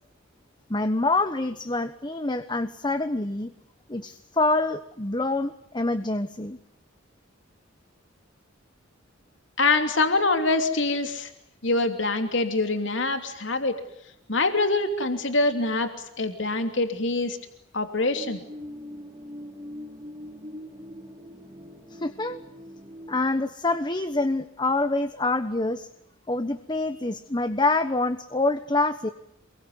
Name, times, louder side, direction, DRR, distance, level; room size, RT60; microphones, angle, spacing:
voice 1, 0.7-3.5 3.9-6.6 21.9-22.4 23.1-25.9 26.3-29.1, left 2 dB, 20° left, 10 dB, 1.2 m, -26 dB
voice 2, 9.6-11.3 11.6-13.8 14.3-15.9 16.2-17.4 17.7-18.4, left 3 dB, 65° left, 7 dB, 3.0 m, -24 dB
sound 1, 18.1-23.2, left 1 dB, 25° right, 3.6 m, -42 dB
28.0 x 22.5 x 9.6 m, 0.77 s
head